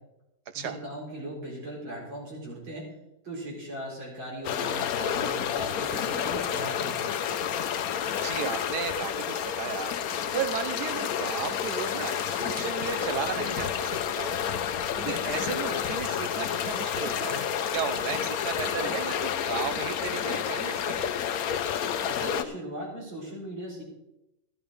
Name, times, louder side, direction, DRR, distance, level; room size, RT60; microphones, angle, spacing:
voice 1, 0.5-2.9 3.2-7.2 22.1-23.8, right 1 dB, 80° right, -3 dB, 5.3 m, -38 dB
sound 1, 4.4-22.4, left 8 dB, 60° left, 1.0 m, -30 dB
voice 2, 7.9-9.9 10.3-14.6 14.9-21.1, right 7 dB, 60° right, 9 dB, 1.5 m, -35 dB
12.5 x 12.0 x 5.1 m, 0.91 s
omnidirectional pair, 2.1 m